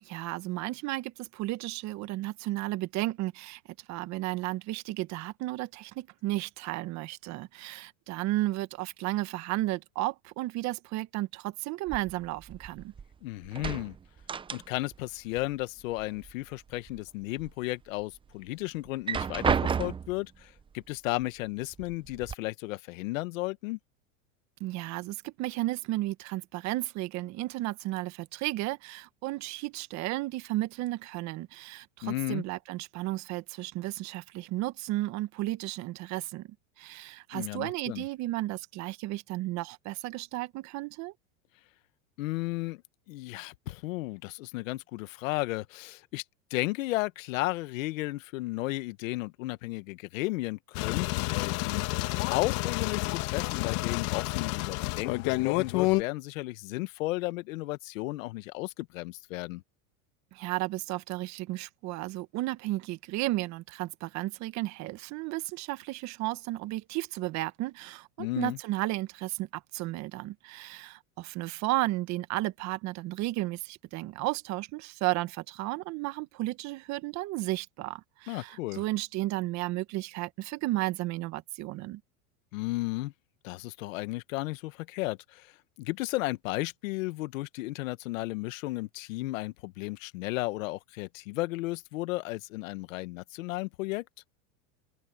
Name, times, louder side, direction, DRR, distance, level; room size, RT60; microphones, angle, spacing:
voice 1, 0.0-3.6 3.9-12.9 24.6-36.5 36.8-41.1 60.3-82.0, right 18 dB, 40° right, 1.3 m, -33 dB
sound 1, 11.9-13.1 13.4-15.0 15.3-16.3 16.7-17.5 18.0-18.1 18.9-20.3 21.2-21.3 21.7-22.3, right 6 dB, 15° right, 0.6 m, -32 dB
voice 2, 13.2-13.9 14.5-23.8 32.0-32.4 37.3-38.1 42.2-42.8 43.1-46.2 46.5-59.6 68.2-68.6 78.3-78.8 82.5-83.1 83.4-94.0, left 20 dB, 70° left, 1.5 m, -34 dB
sound 2, 50.7-56.0, left 23 dB, 55° left, 2.1 m, -29 dB
open air
supercardioid pair, 130°, 41 cm